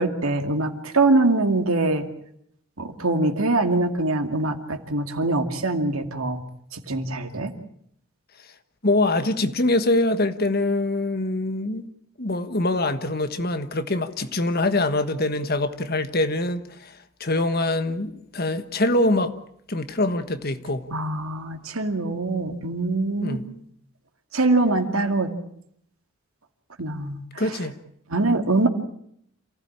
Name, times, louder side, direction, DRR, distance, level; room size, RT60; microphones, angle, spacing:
voice 1, 0.0-2.1 2.8-6.4 6.7-7.5 20.9-23.4 24.3-25.3 26.8-27.6 28.1-28.7, right 2 dB, 75° right, 2.3 m, -23 dB
voice 2, 8.8-11.8 12.2-19.3 19.7-20.8 23.2-23.4 27.4-27.7, left 2 dB, 45° left, 1.4 m, -24 dB
27.5 x 16.0 x 8.8 m
head